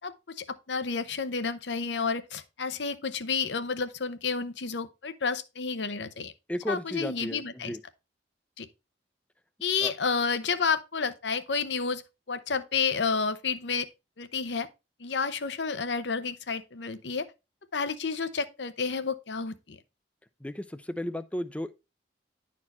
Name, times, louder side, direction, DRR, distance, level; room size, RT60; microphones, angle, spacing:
voice 1, 0.0-6.3 6.7-7.8 8.6-8.7 9.6-12.0 12.3-13.9 14.2-14.7 15.0-17.3 17.7-19.8, left 5 dB, 70° left, 0.8 m, -30 dB
voice 2, 6.5-7.8 9.8-9.9 20.4-21.7, equal, 5° left, 0.5 m, -34 dB
11.0 x 4.3 x 4.2 m
head